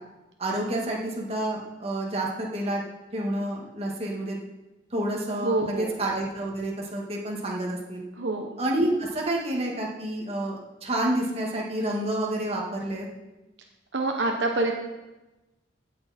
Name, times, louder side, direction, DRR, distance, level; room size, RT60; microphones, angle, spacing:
voice 1, 0.4-2.8 3.1-4.4 4.9-8.0 8.6-13.1, right 1 dB, 35° right, -2 dB, 2.0 m, -29 dB
voice 2, 5.4-5.9 8.2-8.5 13.9-14.7, right 2 dB, 70° right, 2 dB, 1.1 m, -26 dB
16.0 x 6.7 x 4.4 m, 1.0 s
head